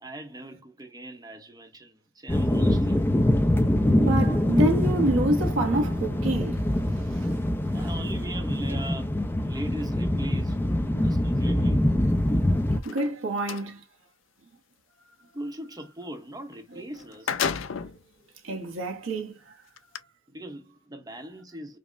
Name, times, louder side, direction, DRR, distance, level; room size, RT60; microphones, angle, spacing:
voice 1, 0.0-3.0 7.7-10.7 11.0-11.8 15.3-17.4 20.3-21.8, right 1 dB, 20° right, 0.7 m, -40 dB
sound 1, 2.3-12.8, left 1 dB, 10° left, 0.4 m, -24 dB
voice 2, 4.0-7.4 10.9-11.5 12.8-13.8 18.4-19.4, right 1 dB, 80° right, 0.9 m, -28 dB
sound 2, 12.7-13.7 16.5-16.6 16.9-18.0 18.7-18.8 19.8-20.0, left 6 dB, 70° left, 0.4 m, -31 dB
5.0 x 2.0 x 2.4 m
head